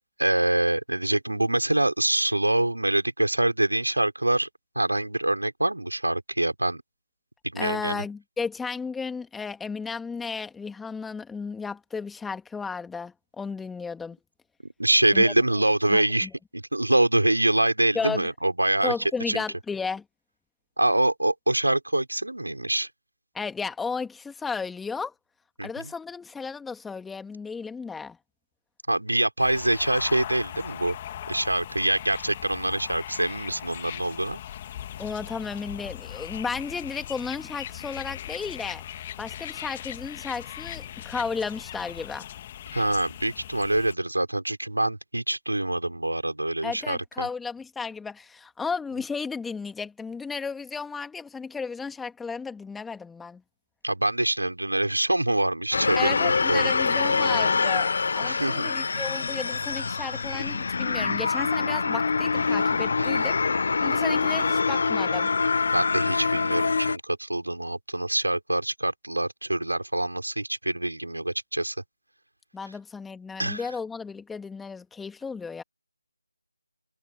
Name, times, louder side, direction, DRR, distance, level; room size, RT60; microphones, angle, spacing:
voice 1, 0.2-4.5 4.7-6.8 7.5-8.0 14.6-18.9 19.3-19.4 20.8-22.9 25.6-25.9 28.9-31.0 31.3-34.4 42.7-47.3 53.8-56.7 58.2-58.7 63.0-63.3 65.7-71.7 73.4-73.6, right 1 dB, 80° right, 5.0 m, -25 dB
voice 2, 7.6-14.2 15.1-15.3 15.9-16.3 17.9-18.3 18.8-20.0 23.3-25.1 25.6-28.2 35.0-38.8 39.2-42.2 46.6-53.4 56.0-63.4 63.8-65.3 72.5-75.6, left 5 dB, 5° left, 2.2 m, -34 dB
sound 1, 29.4-43.9, left 11 dB, 20° left, 2.2 m, -39 dB
sound 2, 55.7-67.0, left 4 dB, 45° left, 0.4 m, -25 dB
figure-of-eight pair, 160°, 0 cm